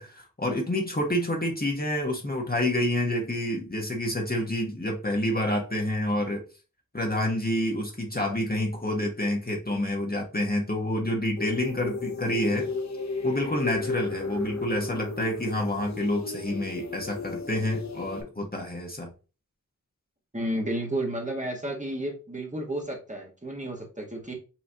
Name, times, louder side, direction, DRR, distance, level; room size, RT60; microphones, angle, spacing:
voice 1, 0.0-6.4 6.9-12.7 13.2-19.1, left 1 dB, 30° left, 1.2 m, -28 dB
sound 1, 11.4-18.2, left 3 dB, 55° left, 0.8 m, -34 dB
voice 2, 20.3-24.3, right 1 dB, 20° right, 1.4 m, -32 dB
5.7 x 3.1 x 2.8 m
wide cardioid pair, 40°, 33 cm